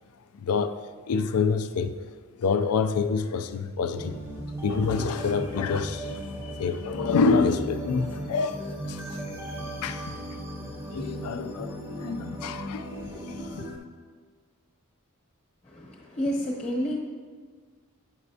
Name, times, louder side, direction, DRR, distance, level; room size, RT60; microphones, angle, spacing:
voice 1, 0.4-0.8 1.1-2.0 2.4-4.2 4.6-9.6 9.8-10.4 10.9-13.7, left 5 dB, 85° left, 10 dB, 0.4 m, -27 dB
sound 1, 3.9-13.8, right 1 dB, 10° right, 0.6 m, -37 dB
voice 2, 15.6-17.0, equal, 30° left, -2 dB, 0.9 m, -30 dB
7.9 x 5.3 x 2.7 m, 1.5 s
head